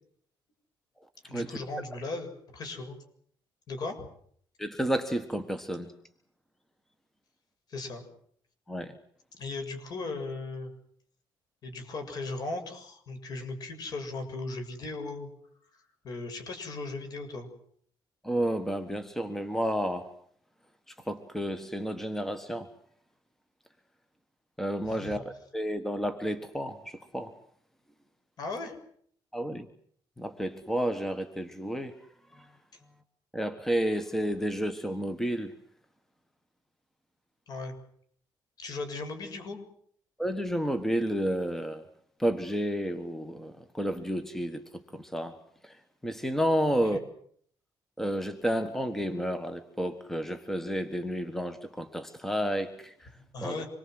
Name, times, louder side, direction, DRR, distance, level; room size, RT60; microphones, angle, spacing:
voice 1, 1.2-3.0 3.7-4.1 7.7-8.1 9.4-10.7 11.6-15.3 15.7-17.5 24.9-25.2 28.4-28.8 37.5-37.7 38.6-39.6 46.6-47.0 53.2-53.7, left 3 dB, 50° left, 6 dB, 7.1 m, -37 dB
voice 2, 4.6-5.9 8.7-9.0 18.2-20.1 21.1-22.7 24.6-27.3 29.3-29.7 30.2-31.9 32.3-32.5 33.3-35.5 40.2-41.8 42.2-45.4 45.6-45.8 46.0-47.0 48.0-53.1 53.4-53.6, equal, 5° left, 9 dB, 1.5 m, -31 dB
26.5 x 22.0 x 7.9 m, 0.63 s
cardioid pair, 140°, 8 cm